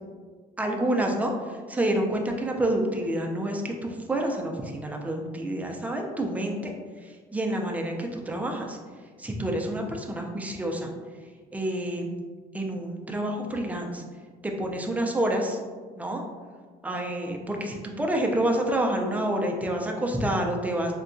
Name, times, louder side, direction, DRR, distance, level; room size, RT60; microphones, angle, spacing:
voice 1, 0.6-6.7 7.0-8.8 9.2-10.9 11.5-12.1 12.5-14.0 14.4-15.6 15.9-16.2 16.8-20.9, right 1 dB, 10° right, 1 dB, 0.4 m, -28 dB
3.6 x 2.2 x 2.5 m, 1.5 s
cardioid pair, 110°, 17 cm